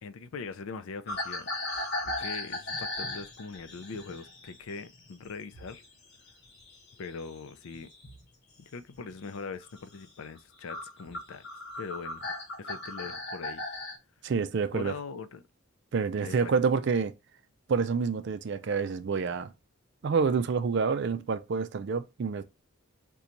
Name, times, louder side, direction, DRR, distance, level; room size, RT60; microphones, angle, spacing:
voice 1, 0.0-1.5 2.0-5.8 7.0-7.9 8.6-11.4 11.8-13.6 14.7-15.4 16.2-16.5, left 4 dB, 70° left, 0.4 m, -41 dB
sound 1, 1.1-5.9 6.1-8.3 8.8-9.1 9.6-9.8 10.4-10.5 10.7-14.0, left 2 dB, 50° left, 1.1 m, -37 dB
voice 2, 14.2-14.9 15.9-17.1 17.7-19.5 20.0-22.4, right 5 dB, 55° right, 0.4 m, -28 dB
3.8 x 2.3 x 2.9 m
head